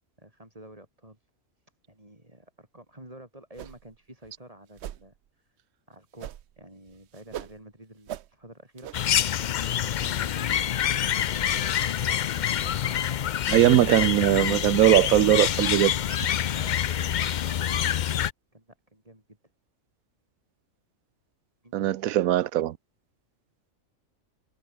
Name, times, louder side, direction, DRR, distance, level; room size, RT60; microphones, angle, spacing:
voice 1, 0.2-1.3 1.9-5.6 5.9-9.2 9.5-13.3 16.5-17.9 18.5-19.4 21.6-21.9, right 1 dB, 25° right, 5.9 m, -49 dB
sound 1, 3.6-4.0 4.2-4.3 4.8-5.1 6.2-6.6 6.9-7.6 8.1-8.3 8.8-9.0, right 11 dB, 60° right, 0.8 m, -39 dB
sound 2, 8.9-18.3, left 10 dB, 75° left, 0.4 m, -26 dB
voice 2, 13.5-16.3 21.7-22.8, right 13 dB, 90° right, 1.1 m, -21 dB
omnidirectional pair, 1.4 m